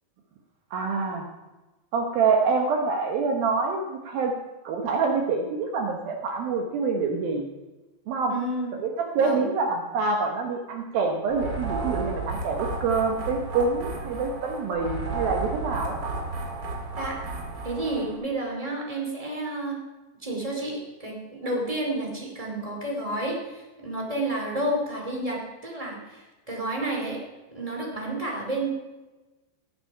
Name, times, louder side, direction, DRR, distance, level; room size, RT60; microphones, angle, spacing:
voice 1, 0.7-1.3 1.9-4.3 4.6-7.5 8.1-8.3 8.8-16.0, right 4 dB, 75° right, 2 dB, 2.2 m, -26 dB
voice 2, 8.3-8.7 9.1-9.4 16.9-17.2 17.6-19.8 20.2-27.2 27.5-28.7, right 1 dB, 15° right, -1 dB, 1.1 m, -30 dB
sound 1, 11.3-18.2, right 3 dB, 45° right, 1.4 m, -33 dB
18.0 x 7.4 x 5.6 m, 1.1 s
omnidirectional pair, 5.6 m